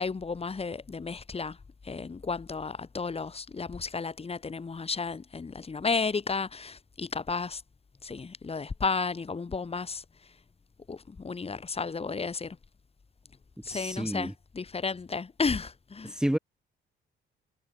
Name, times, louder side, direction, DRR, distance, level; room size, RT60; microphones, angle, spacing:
voice 1, 0.0-1.6 1.8-7.6 8.0-10.0 10.9-12.6 13.6-16.1, left 4 dB, 30° left, 3.0 m, -33 dB
voice 2, 13.7-14.3 16.0-16.4, equal, 5° right, 1.8 m, -30 dB
cardioid pair, 90°, 20 cm